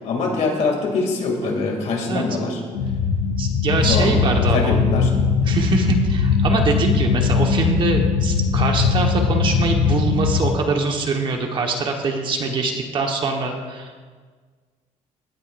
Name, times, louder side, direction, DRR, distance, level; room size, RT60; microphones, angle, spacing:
voice 1, 0.0-2.6 3.8-5.1, left 3 dB, 60° left, 1 dB, 2.6 m, -23 dB
sound 1, 2.7-10.5, left 5 dB, 80° left, 0.9 m, -20 dB
voice 2, 3.4-4.9 5.4-14.0, right 3 dB, 40° right, 2 dB, 1.4 m, -23 dB
17.0 x 12.0 x 2.6 m, 1.5 s
cardioid pair, 155°, 14 cm